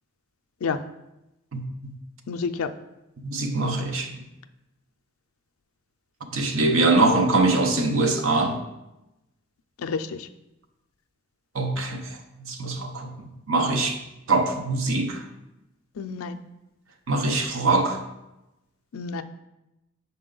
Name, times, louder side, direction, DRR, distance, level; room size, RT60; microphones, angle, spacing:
voice 1, 1.5-1.9 3.2-4.2 6.3-8.6 11.5-13.1 13.5-14.0 14.3-15.2 17.1-18.0, right 2 dB, 75° right, 5 dB, 0.7 m, -23 dB
voice 2, 2.3-2.7 9.8-10.3 16.0-16.4 18.9-19.2, left 5 dB, 85° left, 9 dB, 0.4 m, -29 dB
5.8 x 4.3 x 3.8 m, 0.95 s
head